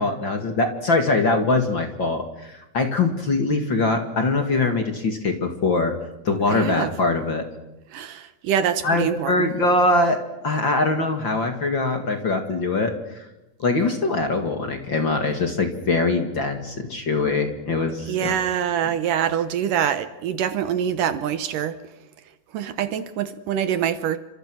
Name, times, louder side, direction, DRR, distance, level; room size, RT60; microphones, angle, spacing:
voice 1, 0.0-5.9 6.2-7.5 8.8-10.2 10.4-13.3 13.6-18.3, left 3 dB, 40° left, 2.3 m, -22 dB
voice 2, 6.5-6.9 7.9-9.5 18.1-21.8 22.5-24.2, right 9 dB, 70° right, 2.4 m, -25 dB
29.5 x 26.0 x 6.3 m
omnidirectional pair, 4.2 m